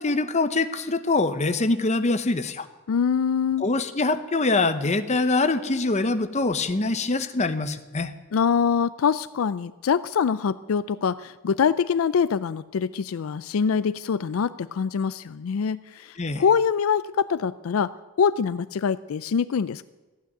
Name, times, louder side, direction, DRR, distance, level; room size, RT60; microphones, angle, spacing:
voice 1, 0.0-2.7 3.6-8.1 16.2-16.4, left 3 dB, 35° left, 10 dB, 0.8 m, -24 dB
voice 2, 2.9-3.6 8.3-17.9 18.2-19.8, left 6 dB, 75° left, 16 dB, 0.4 m, -24 dB
14.5 x 9.1 x 9.3 m, 1.2 s
head